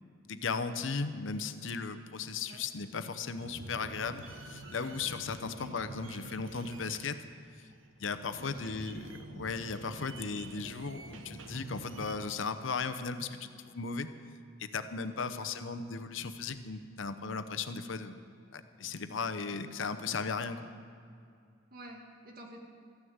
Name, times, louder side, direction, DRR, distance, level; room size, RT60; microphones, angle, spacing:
voice 1, 0.0-7.2 8.0-14.1 14.6-18.2 18.5-20.7, left 4 dB, 80° left, 10 dB, 0.8 m, -36 dB
sound 1, 3.4-12.3, right 2 dB, 85° right, 1.0 m, -48 dB
voice 2, 8.4-8.9 15.3-15.6 21.7-22.6, right 1 dB, 50° right, 1 dB, 2.1 m, -49 dB
14.0 x 9.7 x 8.0 m, 2.3 s
head